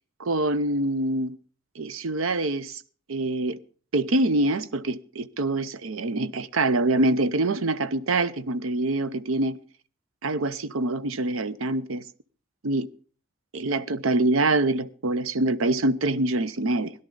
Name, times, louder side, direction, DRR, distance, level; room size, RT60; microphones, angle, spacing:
voice 1, 0.2-1.3 1.8-2.8 3.1-3.6 3.9-9.6 10.2-12.0 12.6-12.9 13.5-16.9, right 2 dB, 85° right, 0.7 m, -25 dB
17.5 x 11.0 x 3.9 m
head